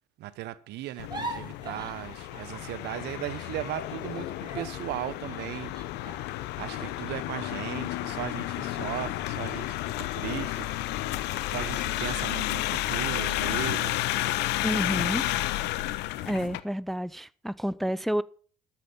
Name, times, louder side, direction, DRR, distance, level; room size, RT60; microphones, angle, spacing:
voice 1, 0.2-5.7 6.6-10.7 11.5-14.1, right 14 dB, 65° right, 1.0 m, -37 dB
sound 1, 0.9-3.4 3.6-8.0 8.5-8.7 9.1-9.6, right 2 dB, 25° right, 4.8 m, -44 dB
sound 2, 1.0-16.6, left 16 dB, 70° left, 0.8 m, -31 dB
voice 2, 14.6-15.2 16.3-18.2, equal, ahead, 0.5 m, -29 dB
13.0 x 9.0 x 5.6 m
hypercardioid pair, 60°, 18 cm